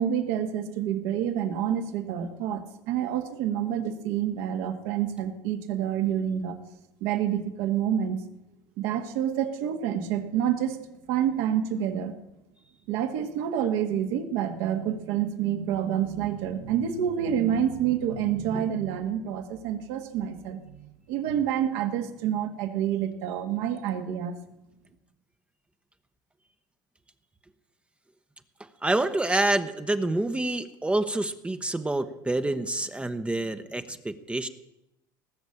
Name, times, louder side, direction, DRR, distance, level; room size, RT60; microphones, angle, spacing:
voice 1, 0.0-6.6 7.0-8.2 8.8-10.8 11.1-12.2 12.9-24.4, right 9 dB, 65° right, 6 dB, 1.7 m, -28 dB
voice 2, 28.8-34.5, right 2 dB, 10° right, 8 dB, 0.9 m, -27 dB
19.0 x 6.5 x 8.6 m, 0.88 s
hypercardioid pair, 85°, 11 cm